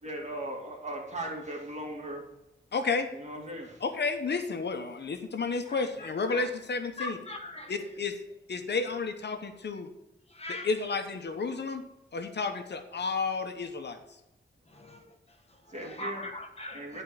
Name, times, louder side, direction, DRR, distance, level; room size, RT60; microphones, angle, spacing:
voice 1, 0.0-2.2 3.1-3.8 15.7-16.2 16.7-17.0, right 1 dB, 35° right, -1 dB, 2.7 m, -38 dB
voice 2, 2.7-3.1 3.8-7.2 7.7-8.2 8.5-9.9 10.6-11.8 12.1-14.0, left 4 dB, 65° left, 6 dB, 1.0 m, -31 dB
voice 3, 5.6-6.5 7.0-8.0 10.3-11.0 14.7-17.0, left 2 dB, 35° left, 3 dB, 1.4 m, -42 dB
11.5 x 4.5 x 7.4 m, 0.94 s
wide cardioid pair, 145°, 19 cm